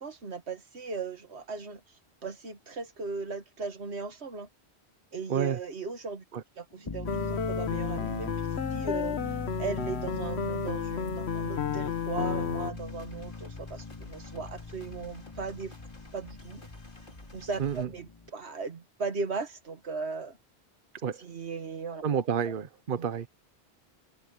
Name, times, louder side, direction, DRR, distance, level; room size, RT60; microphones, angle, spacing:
voice 1, 0.0-1.8 2.2-4.5 5.1-6.2 6.6-8.3 8.7-9.2 9.6-15.7 16.1-16.7 17.3-20.4 21.2-22.0 22.5-22.6 23.0-23.1, right 4 dB, 90° right, 1.9 m, -37 dB
sound 1, 6.8-18.3, left 4 dB, 25° left, 0.9 m, -40 dB
sound 2, 7.0-12.7, left 6 dB, 80° left, 1.4 m, -32 dB
sound 3, 12.7-17.9, left 1 dB, 50° left, 4.5 m, -52 dB
voice 2, 22.0-23.3, right 7 dB, 55° right, 1.0 m, -29 dB
omnidirectional pair, 1.1 m